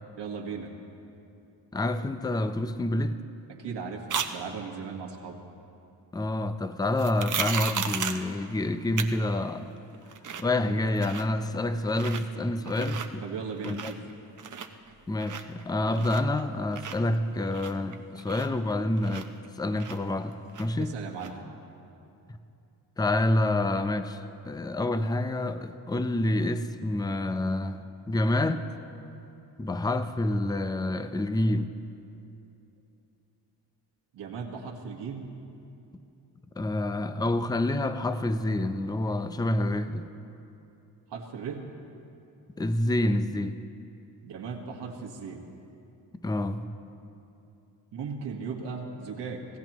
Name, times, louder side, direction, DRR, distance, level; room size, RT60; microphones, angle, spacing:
voice 1, 0.2-0.7 3.5-5.4 13.2-14.0 20.8-21.4 34.1-35.3 41.1-41.7 44.2-45.5 47.9-49.5, right 5 dB, 90° right, 0 dB, 1.7 m, -37 dB
voice 2, 1.7-3.2 6.1-9.8 10.4-13.2 13.6-13.9 15.1-19.3 19.6-21.0 23.0-28.7 29.6-31.7 36.6-40.1 42.6-43.6 46.2-46.7, left 1 dB, 10° left, 10 dB, 0.5 m, -28 dB
sound 1, 4.1-4.3 7.0-8.3 9.0-9.1 9.5-9.6 9.9-10.5 10.8-11.4 11.9-12.2 12.6-13.1 13.5-14.1 14.4-16.4 16.7-19.5 19.8-20.8 21.2-21.3, right 7 dB, 45° right, 0.8 m, -34 dB
26.5 x 16.5 x 3.1 m, 2.8 s
cardioid pair, 110°, 41 cm